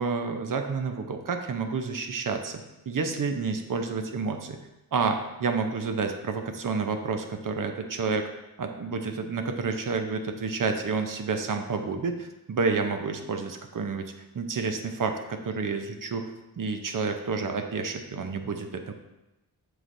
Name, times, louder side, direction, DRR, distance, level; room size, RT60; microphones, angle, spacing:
voice 1, 0.0-4.6 4.9-8.3 8.6-16.3 16.6-18.9, right 4 dB, 50° right, 6 dB, 0.7 m, -29 dB
7.3 x 4.9 x 2.6 m, 0.97 s
wide cardioid pair, 85°, 40 cm